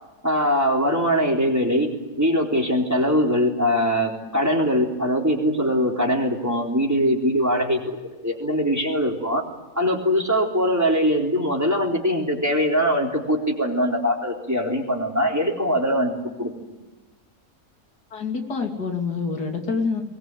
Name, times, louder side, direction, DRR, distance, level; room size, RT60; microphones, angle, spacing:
voice 1, 0.2-1.9 2.2-8.0 8.2-9.4 9.8-16.5, equal, 10° right, 1 dB, 3.9 m, -22 dB
voice 2, 18.1-20.0, left 4 dB, 90° left, 3 dB, 3.4 m, -26 dB
22.5 x 20.0 x 9.2 m, 1.1 s
omnidirectional pair, 1.7 m